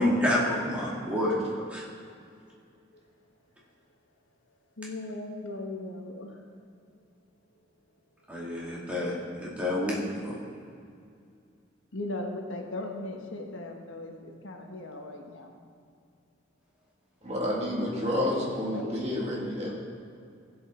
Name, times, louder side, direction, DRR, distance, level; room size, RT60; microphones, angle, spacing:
voice 1, 0.0-1.4 1.7-1.8 8.3-10.4, left 1 dB, 5° right, -5 dB, 2.3 m, -28 dB
voice 2, 4.8-6.5 11.9-15.5 18.0-19.1, left 2 dB, 90° left, 2 dB, 1.4 m, -38 dB
voice 3, 17.2-19.7, left 1 dB, 35° right, -3 dB, 2.1 m, -29 dB
16.0 x 8.0 x 3.9 m, 2.4 s
head